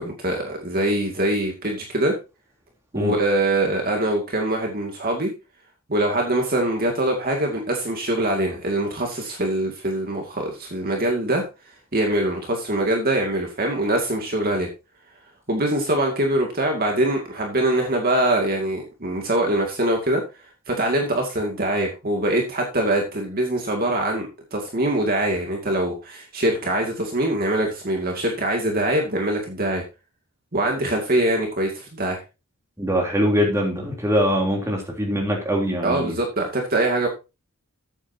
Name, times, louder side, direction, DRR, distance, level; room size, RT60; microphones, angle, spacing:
voice 1, 0.0-2.2 2.9-5.3 5.9-11.4 11.9-14.7 15.5-20.2 20.7-29.8 30.5-32.2 35.8-37.1, right 1 dB, 40° right, 1 dB, 2.3 m, -23 dB
voice 2, 32.8-36.2, equal, 15° right, -1 dB, 3.3 m, -22 dB
13.5 x 8.7 x 2.8 m, 0.28 s
head